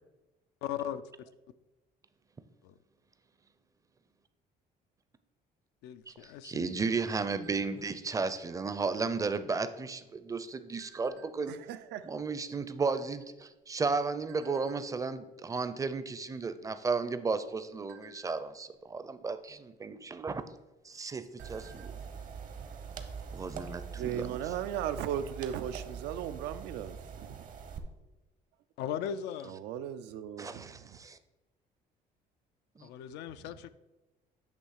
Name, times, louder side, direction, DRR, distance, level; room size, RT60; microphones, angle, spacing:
voice 1, 0.6-1.0 2.6-2.7 5.8-6.8 28.8-29.6 32.8-33.7, left 9 dB, 85° left, 0.4 m, -38 dB
sound 1, 6.0-8.0 8.5-8.7 9.0-9.4 10.1-11.6 12.2-12.3 12.5-13.8 14.3-14.8 15.3-15.6 15.9-16.1 16.5-17.1 17.5-18.9 20.0-20.1 20.5-20.6 21.0-22.0 22.3-22.4 22.8-22.9, right 8 dB, 70° right, 1.5 m, -58 dB
voice 2, 6.4-11.6 12.0-20.4 20.8-22.0 23.3-24.5 30.4-31.2 32.8-32.9, right 4 dB, 20° right, 0.5 m, -34 dB
voice 3, 11.5-12.1 24.0-27.0 27.2-27.4 29.5-31.0, right 10 dB, 85° right, 0.5 m, -37 dB
sound 2, 21.4-27.8, right 6 dB, 50° right, 0.8 m, -43 dB
8.3 x 3.1 x 6.4 m
cardioid pair, 110°, 17 cm